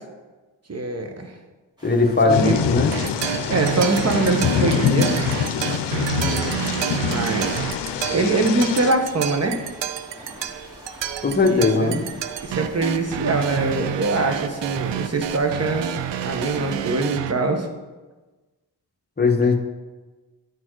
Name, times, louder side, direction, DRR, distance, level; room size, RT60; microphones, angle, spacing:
voice 1, 0.7-1.3 2.2-2.6 3.5-5.2 6.9-7.6 8.1-9.6 11.4-12.1 12.4-15.9 16.2-17.7, right 3 dB, 35° right, 4 dB, 1.1 m, -23 dB
voice 2, 1.8-2.9 11.2-12.0 19.2-19.6, left 3 dB, 25° left, 4 dB, 1.0 m, -19 dB
sound 1, 1.8-16.9, equal, 10° right, 2.4 m, -44 dB
Thunder / Rain, 2.3-8.9, left 8 dB, 75° left, 0.6 m, -25 dB
sound 2, 2.9-17.3, right 10 dB, 80° right, 0.5 m, -29 dB
10.5 x 4.3 x 4.6 m, 1.2 s
cardioid pair, 80°, 43 cm